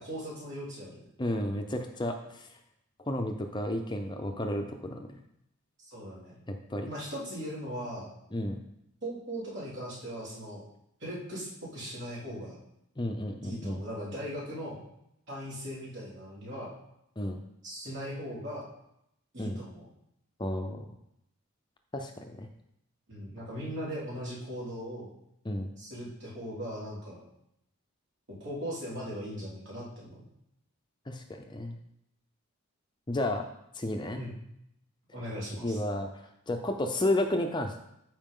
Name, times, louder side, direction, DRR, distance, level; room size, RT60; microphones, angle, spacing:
voice 1, 0.0-1.1 5.8-6.4 6.9-8.1 9.0-10.6 11.0-12.6 13.4-14.8 15.3-16.7 17.6-18.7 19.3-19.9 23.1-25.1 25.8-27.2 28.3-30.2 34.2-34.4 35.1-35.8, equal, 55° right, -6 dB, 3.6 m, -39 dB
voice 2, 1.2-2.4 3.1-5.2 6.5-6.9 8.3-8.6 13.0-13.8 17.2-17.4 19.4-19.6 20.4-20.8 21.9-22.5 25.4-25.7 31.1-31.8 33.1-33.5 33.8-34.2 35.6-36.1 36.5-37.8, left 1 dB, 20° left, 4 dB, 0.6 m, -32 dB
14.0 x 4.8 x 3.8 m, 0.78 s
head